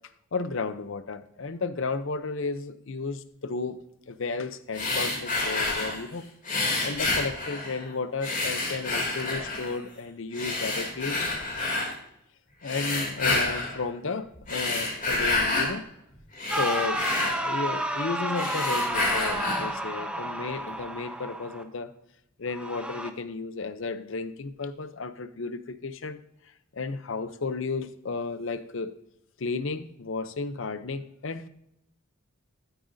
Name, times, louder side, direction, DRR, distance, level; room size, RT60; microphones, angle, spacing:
voice 1, 0.3-3.8 4.1-6.3 6.8-11.2 12.6-15.9 16.6-21.9 22.4-26.2 26.7-29.0 29.4-31.5, left 4 dB, 60° left, 13 dB, 0.6 m, -33 dB
sound 1, 4.7-6.0 6.4-7.9 8.2-9.8 10.3-11.9 12.6-13.8 14.3-15.7 16.1-18.0 18.3-19.7, left 2 dB, 35° left, 2.8 m, -29 dB
sound 2, 16.5-21.6 22.5-23.1, right 1 dB, 5° right, 0.6 m, -31 dB
13.5 x 8.9 x 2.7 m, 0.78 s
head